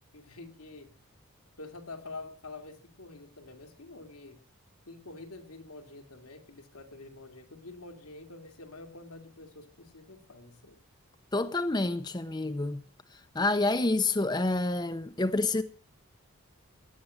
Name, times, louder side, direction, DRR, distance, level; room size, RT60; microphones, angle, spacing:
voice 1, 0.1-0.9 1.6-4.4 4.9-10.8, left 3 dB, 85° left, 2.5 m, -47 dB
voice 2, 11.3-12.8 13.3-15.6, left 2 dB, 20° left, 0.6 m, -28 dB
17.0 x 11.0 x 6.4 m
head